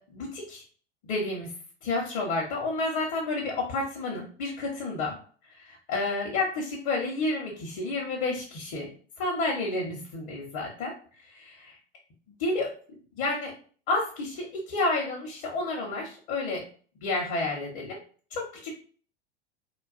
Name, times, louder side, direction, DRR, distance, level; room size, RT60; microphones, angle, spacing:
voice 1, 0.1-0.6 1.0-1.5 1.8-5.2 5.5-8.9 9.2-10.9 11.2-11.7 12.4-12.7 13.2-13.5 13.9-16.6 17.0-18.0 18.3-18.8, left 2 dB, 50° left, -2 dB, 0.8 m, -30 dB
2.4 x 2.3 x 2.4 m, 0.43 s
hypercardioid pair, 90°, 34 cm